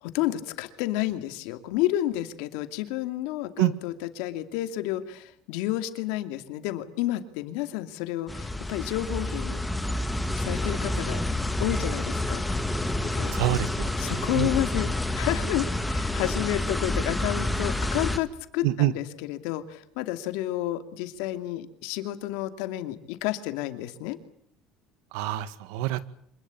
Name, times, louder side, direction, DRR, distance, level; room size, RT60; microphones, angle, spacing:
voice 1, 0.0-9.6 10.3-11.2 11.6-13.6 14.0-24.2, left 14 dB, 80° left, 9 dB, 2.6 m, -31 dB
sound 1, 8.3-18.2, left 1 dB, 5° left, 1.6 m, -28 dB
voice 2, 13.3-14.5 18.6-18.9 25.1-26.1, right 15 dB, 80° right, 15 dB, 1.8 m, -27 dB
26.0 x 20.0 x 8.6 m, 0.67 s
cardioid pair, 150°, 0 cm